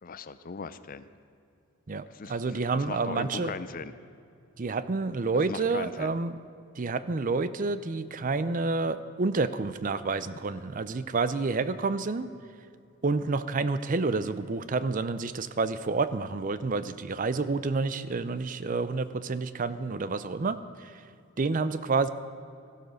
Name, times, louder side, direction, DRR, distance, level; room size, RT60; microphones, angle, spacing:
voice 1, 0.0-1.0 2.1-2.3 2.9-3.9 5.5-6.1, left 4 dB, 40° left, 13 dB, 0.5 m, -38 dB
voice 2, 1.9-3.6 4.6-6.4 6.8-12.3 13.0-21.0 21.4-22.1, right 3 dB, 35° right, 14 dB, 0.5 m, -29 dB
15.0 x 12.0 x 6.3 m, 2.5 s
head